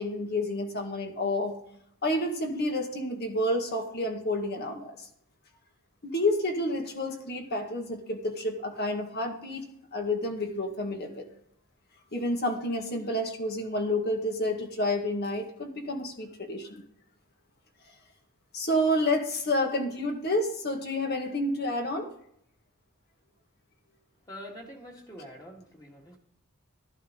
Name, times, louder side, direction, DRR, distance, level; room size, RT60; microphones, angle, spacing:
voice 1, 0.0-1.6 2.0-5.1 6.0-9.6 9.9-11.3 12.1-16.8 18.5-22.1, left 1 dB, 45° left, 3 dB, 2.0 m, -29 dB
voice 2, 24.3-26.2, equal, 15° left, -1 dB, 2.3 m, -45 dB
13.0 x 11.5 x 4.0 m, 0.69 s
head